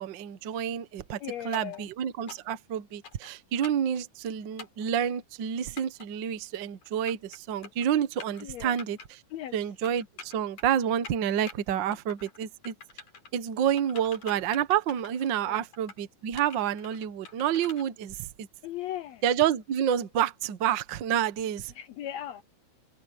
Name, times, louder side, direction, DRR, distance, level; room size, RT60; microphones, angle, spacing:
voice 1, 0.0-1.2 1.4-9.0 9.5-12.7 13.3-18.5 19.2-21.7, right 9 dB, 80° right, 1.0 m, -29 dB
voice 2, 1.2-1.9 8.4-8.8 9.3-9.5 15.5-15.6 18.6-19.2 21.7-22.4, left 12 dB, 80° left, 1.6 m, -37 dB
sound 1, 1.5-1.8 2.3-2.6 3.0-3.3 3.6-3.9 4.6-4.8 5.8-6.1 6.8-7.4 7.6-7.9 8.2-8.4 8.8-9.1 9.8-10.7 11.0-11.5 11.9-12.4 12.6-13.3 13.8-15.3 15.7-16.0 16.4-17.8, left 5 dB, 65° left, 5.1 m, -45 dB
open air
omnidirectional pair, 3.7 m